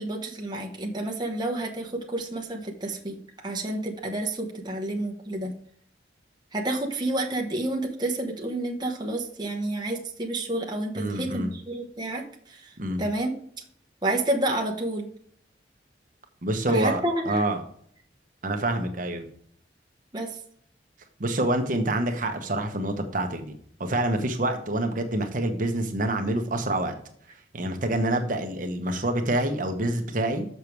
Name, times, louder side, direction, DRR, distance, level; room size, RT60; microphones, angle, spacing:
voice 1, 0.0-3.2 3.4-5.5 6.5-13.3 14.0-15.1 16.7-17.4 20.1-20.4, right 1 dB, 25° right, 1 dB, 1.0 m, -30 dB
voice 2, 10.9-11.5 12.8-13.0 16.4-17.6 18.4-19.3 21.2-23.5 23.8-26.9 27.5-30.5, right 1 dB, 45° right, 5 dB, 1.1 m, -27 dB
6.8 x 6.6 x 4.6 m, 0.63 s
head